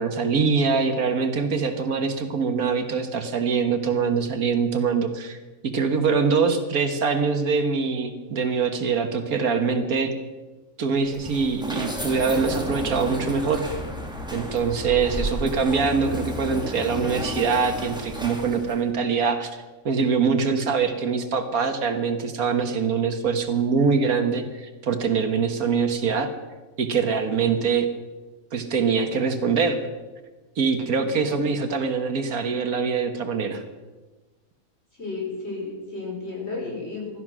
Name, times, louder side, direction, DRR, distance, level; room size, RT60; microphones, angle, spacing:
voice 1, 0.0-5.4 5.6-10.1 10.8-13.6 14.3-26.3 26.8-27.9 28.5-29.8 30.6-33.6, right 5 dB, 70° right, 7 dB, 1.7 m, -23 dB
sound 1, 11.0-18.8, equal, 5° right, 2.1 m, -32 dB
voice 2, 31.2-31.5 35.0-37.2, left 3 dB, 40° left, -2 dB, 5.3 m, -33 dB
16.0 x 12.5 x 6.1 m, 1.2 s
omnidirectional pair, 1.6 m